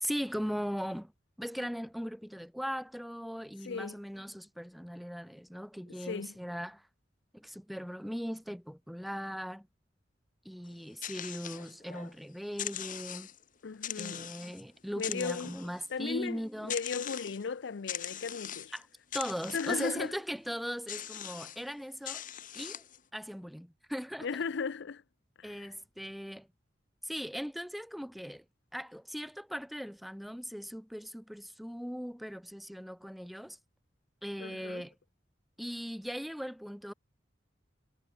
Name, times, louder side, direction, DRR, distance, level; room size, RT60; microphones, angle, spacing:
voice 1, 0.0-1.1 1.4-6.9 7.3-9.7 10.5-13.3 14.0-16.8 18.7-18.9 19.1-22.2 22.5-22.8 23.1-24.3 25.4-26.5 27.0-28.4 28.7-33.6 34.2-34.9 35.6-36.9, equal, ahead, 0.4 m, -39 dB
voice 2, 3.6-4.0 5.9-6.3 13.6-14.3 15.0-15.6 15.9-18.7 19.5-20.1 24.2-25.0 25.4-25.7 34.4-34.8, left 5 dB, 70° left, 0.5 m, -36 dB
sound 1, 10.7-12.2 12.5-13.4 13.8-14.6 15.0-15.9 16.7-17.5 17.9-18.8 19.1-20.1 20.9-21.6 22.1-23.0, left 10 dB, 45° left, 1.7 m, -41 dB
head